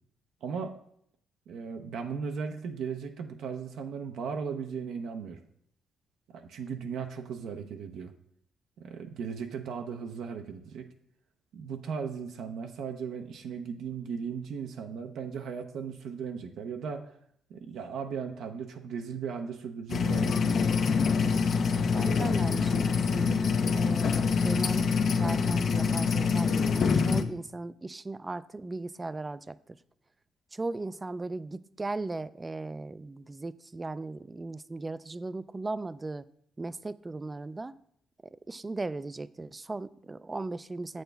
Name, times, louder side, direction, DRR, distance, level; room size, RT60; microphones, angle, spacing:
voice 1, 0.4-0.8 1.5-5.4 6.3-8.1 8.8-10.9 11.5-17.1 17.5-20.7, right 6 dB, 75° right, 5 dB, 0.6 m, -37 dB
sound 1, 19.9-27.2, left 5 dB, 55° left, 0.5 m, -25 dB
voice 2, 21.9-29.6 30.5-36.2 36.6-37.7 38.5-41.0, right 2 dB, 20° right, 16 dB, 0.3 m, -37 dB
7.8 x 6.4 x 3.4 m, 0.67 s
cardioid pair, 90°, 0 cm